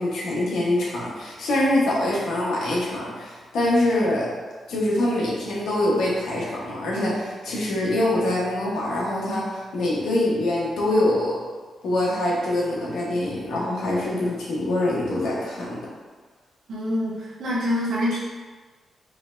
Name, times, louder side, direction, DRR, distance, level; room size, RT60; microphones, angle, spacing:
voice 1, 0.0-4.3 4.7-11.4 11.8-15.8, left 1 dB, 90° left, -4 dB, 1.1 m, -24 dB
voice 2, 16.7-18.2, left 1 dB, 75° right, -7 dB, 0.8 m, -25 dB
4.2 x 3.3 x 2.6 m, 1.4 s
wide cardioid pair, 135°, 0 cm